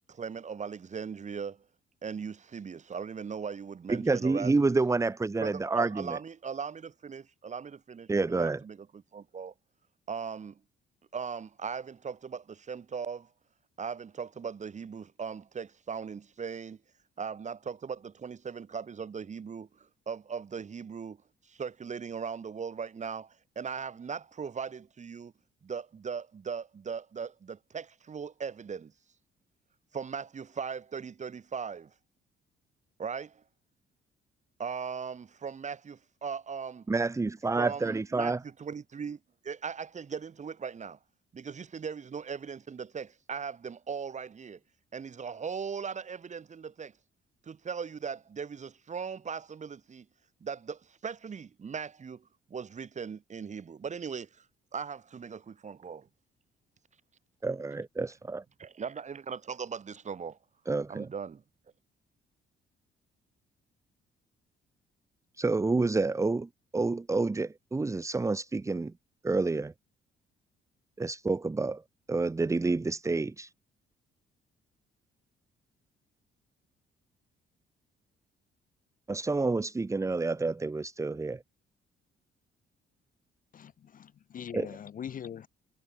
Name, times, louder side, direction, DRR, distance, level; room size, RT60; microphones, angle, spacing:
voice 1, 0.1-1.6 2.0-4.7 5.4-9.5 10.1-10.6 11.1-13.3 13.8-16.8 17.2-19.7 20.1-21.2 21.5-25.3 25.6-28.9 29.9-31.9 33.0-33.4 34.6-36.9 37.5-39.2 39.4-41.0 41.3-44.6 44.9-46.9 47.5-50.1 50.4-54.3 54.7-56.1 58.6-60.4 60.9-61.4, right 6 dB, 35° right, 1.2 m, -39 dB
voice 2, 3.9-6.2 8.1-8.6 36.9-38.4 57.4-58.4 60.7-61.1 65.4-68.9 69.2-69.7 71.0-71.8 72.1-73.5 79.1-81.4 84.5-84.7, right 3 dB, 15° right, 0.6 m, -29 dB
voice 3, 83.5-85.5, left 8 dB, 45° left, 0.6 m, -42 dB
cardioid pair, 90°, 20 cm